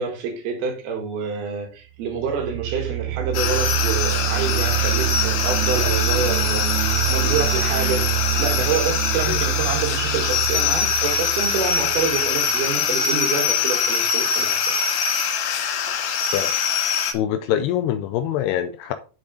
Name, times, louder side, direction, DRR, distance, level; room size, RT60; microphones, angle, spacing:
voice 1, 0.0-6.7 7.1-8.1 8.4-14.6, right 5 dB, 65° right, 3.5 m, -27 dB
sound 1, 2.1-12.8, right 16 dB, 85° right, 3.0 m, -26 dB
sound 2, 3.3-17.1, left 7 dB, 75° left, 3.4 m, -23 dB
voice 2, 17.1-18.9, left 11 dB, 90° left, 2.4 m, -24 dB
7.9 x 7.2 x 3.9 m
omnidirectional pair, 5.3 m